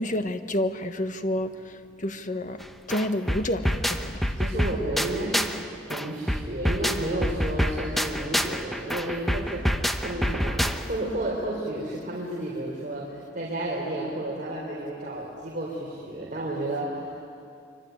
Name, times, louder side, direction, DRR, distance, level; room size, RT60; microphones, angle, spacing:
voice 1, 0.0-2.6 2.9-4.2, left 1 dB, 45° left, 8 dB, 1.4 m, -29 dB
sound 1, 2.6-2.7 2.9-5.6 5.9-11.1, equal, ahead, 1.0 m, -27 dB
voice 2, 4.4-5.5 5.8-17.2, right 1 dB, 45° right, -4 dB, 4.3 m, -32 dB
25.0 x 24.5 x 9.7 m, 2.5 s
head